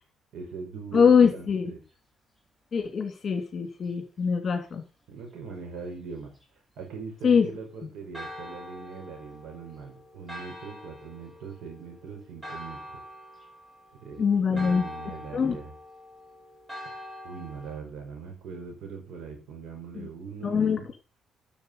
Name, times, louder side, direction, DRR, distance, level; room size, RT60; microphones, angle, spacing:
voice 1, 0.3-1.8 5.1-6.3 6.8-13.0 14.0-15.7 17.2-20.9, right 5 dB, 80° right, 3 dB, 5.4 m, -41 dB
voice 2, 0.9-1.7 2.7-4.8 7.2-7.4 14.2-14.8 15.3-15.6 19.9-20.1 20.4-20.8, left 6 dB, 45° left, 3 dB, 2.9 m, -23 dB
Church bell, 8.1-17.8, left 1 dB, 15° right, 3.4 m, -44 dB
9.5 x 7.2 x 5.5 m, 0.31 s
cardioid pair, 90°, 0 cm